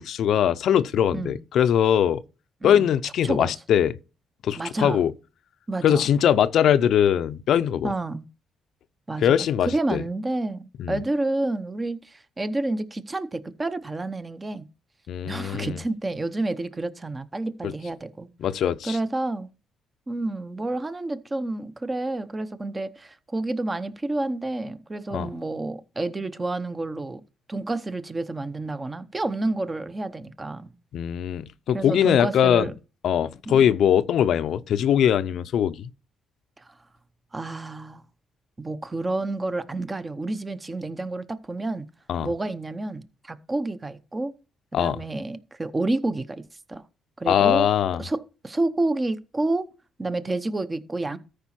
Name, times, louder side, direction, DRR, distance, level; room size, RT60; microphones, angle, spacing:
voice 1, 0.0-2.2 2.6-3.9 4.4-5.1 5.8-7.9 9.2-10.0 10.8-11.0 15.1-15.8 17.6-17.7 18.4-19.0 25.1-25.3 30.9-32.7 33.0-35.9 42.1-42.3 44.7-45.0 47.3-48.0, left 9 dB, 70° left, 0.5 m, -21 dB
voice 2, 4.6-5.0 5.7-6.0 7.8-8.2 9.1-9.3 9.7-14.6 15.2-18.3 18.8-19.5 20.1-27.2 27.5-30.7 31.7-32.7 33.5-33.7 37.3-38.0 38.6-41.9 42.2-44.3 44.7-46.8 47.2-47.7 48.0-49.7 50.0-51.2, right 2 dB, 25° right, 0.8 m, -29 dB
13.5 x 4.9 x 4.3 m
cardioid pair, 90°, 0 cm